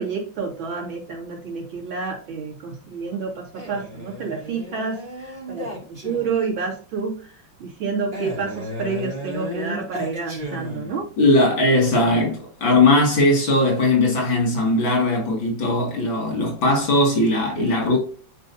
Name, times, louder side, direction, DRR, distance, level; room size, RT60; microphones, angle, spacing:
voice 1, 0.0-7.3 7.6-11.1 17.6-17.7, right 5 dB, 80° right, 3.2 m, -29 dB
Male speech man speaking, 3.5-6.6 8.1-11.1, left 1 dB, 25° right, 2.8 m, -34 dB
voice 2, 11.2-18.0, left 2 dB, 80° left, 3.2 m, -19 dB
11.0 x 4.6 x 2.8 m
omnidirectional pair, 2.1 m